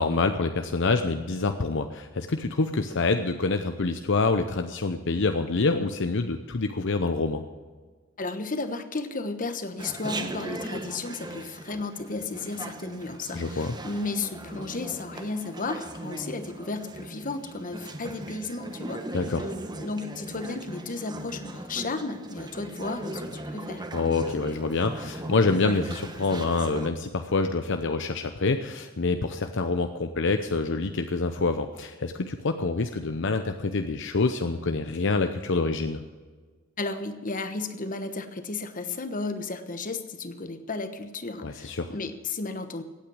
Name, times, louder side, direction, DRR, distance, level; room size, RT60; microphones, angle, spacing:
voice 1, 0.0-7.4 13.3-13.7 19.1-19.5 23.9-36.0 41.4-41.9, left 3 dB, 60° left, 7 dB, 0.7 m, -26 dB
voice 2, 8.2-19.0 19.8-23.9 36.8-42.8, left 3 dB, 40° left, 9 dB, 1.2 m, -34 dB
Chatter, 9.8-26.9, right 2 dB, 20° right, 1.1 m, -38 dB
16.5 x 9.0 x 6.3 m, 1.4 s
head